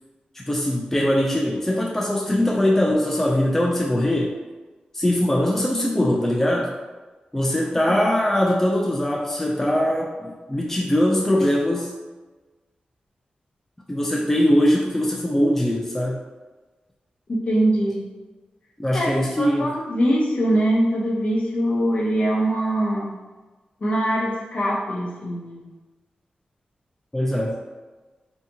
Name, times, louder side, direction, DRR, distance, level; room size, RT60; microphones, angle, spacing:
voice 1, 0.3-4.4 4.9-6.7 7.3-11.9 13.9-16.2 18.8-19.8 27.1-27.6, left 1 dB, 10° left, -2 dB, 0.3 m, -21 dB
voice 2, 17.3-18.1 18.9-19.1 19.4-23.1 23.8-25.7, right 1 dB, 50° left, -4 dB, 0.7 m, -22 dB
2.7 x 2.3 x 2.6 m, 1.2 s
cardioid pair, 75°, 3 cm